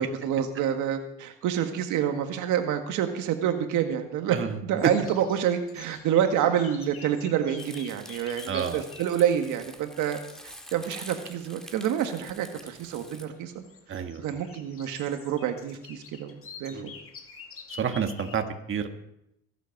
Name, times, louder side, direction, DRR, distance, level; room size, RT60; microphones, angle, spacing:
voice 1, 0.0-4.4 4.6-10.2 10.7-13.6 13.9-16.9, right 9 dB, 80° right, 6 dB, 1.7 m, -28 dB
sound 1, 4.8-11.8 12.1-18.4, left 6 dB, 45° left, 2.3 m, -49 dB
Crumpling crinkling, 7.6-13.3, equal, ahead, 1.9 m, -47 dB
voice 2, 8.5-8.8 13.9-14.2 16.7-16.9 17.7-18.9, right 7 dB, 40° right, 6 dB, 1.5 m, -30 dB
22.0 x 8.2 x 5.9 m, 0.83 s
cardioid pair, 105°, 30 cm